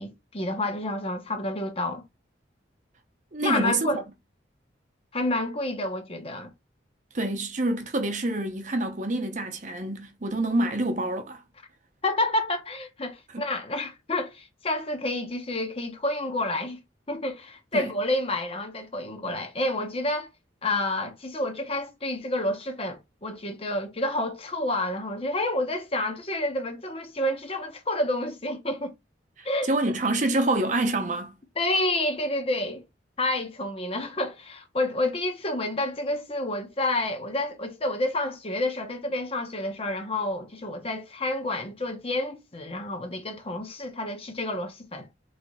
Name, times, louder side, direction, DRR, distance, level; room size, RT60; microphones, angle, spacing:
voice 1, 0.0-2.0 3.4-4.0 5.1-6.5 12.0-16.8 17.1-20.3 20.6-28.9 29.4-29.7 31.6-32.8 33.2-45.1, left 1 dB, 30° left, 0.8 m, -29 dB
voice 2, 3.3-4.0 7.1-11.4 13.3-13.4 17.7-17.9 29.4-31.4, right 2 dB, 40° right, 0.8 m, -27 dB
3.4 x 3.3 x 4.0 m
head